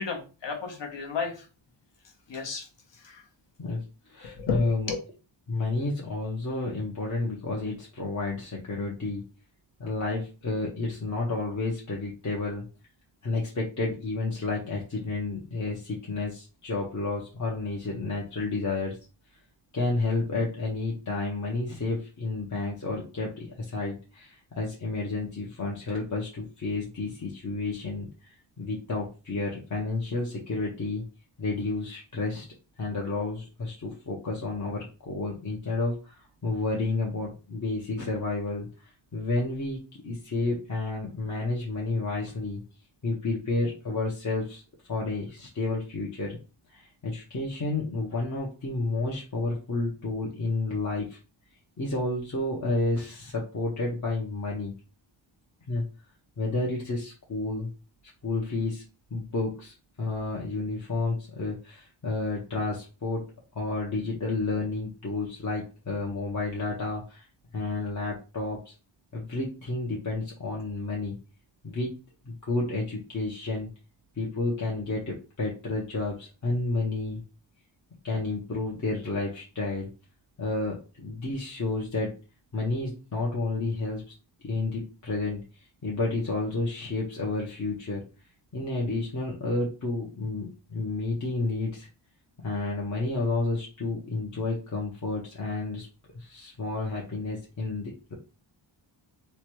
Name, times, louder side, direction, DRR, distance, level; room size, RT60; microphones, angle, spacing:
voice 1, 0.0-1.4 2.3-2.7 3.0-3.2 4.2-5.0, left 5 dB, 60° left, 2 dB, 1.0 m, -33 dB
voice 2, 3.6-4.9 5.5-9.2 9.8-12.7 13.2-19.0 19.7-31.0 31.4-32.5 32.8-42.6 43.0-44.6 44.9-46.4 46.7-51.2 51.8-54.7 55.7-55.8 56.4-57.7 58.2-58.8 59.1-63.3 63.5-67.3 67.5-68.7 69.1-71.2 71.6-71.9 72.2-73.7 74.1-77.2 78.0-79.9 80.4-82.2 82.5-84.1 84.4-88.0 88.5-91.9 92.4-95.9 96.1-98.2, left 3 dB, 40° left, -3 dB, 0.7 m, -31 dB
3.1 x 2.2 x 3.0 m, 0.33 s
wide cardioid pair, 85°, 47 cm